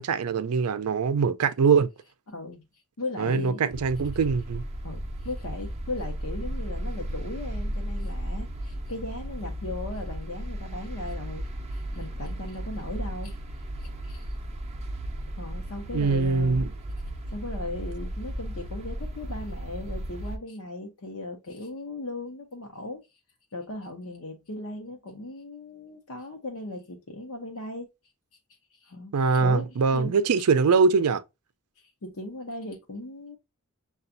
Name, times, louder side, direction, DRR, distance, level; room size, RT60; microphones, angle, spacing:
voice 1, 0.0-1.9 3.2-4.6 15.9-16.7 29.1-31.2, right 5 dB, 85° right, 0.5 m, -23 dB
voice 2, 2.3-3.8 4.8-13.4 13.8-14.3 15.3-16.7 17.3-23.0 23.5-27.9 28.7-30.2 31.8-33.4, left 2 dB, 70° left, 0.8 m, -38 dB
sound 1, 3.7-20.4, right 1 dB, 30° right, 0.5 m, -35 dB
6.8 x 2.3 x 2.6 m
head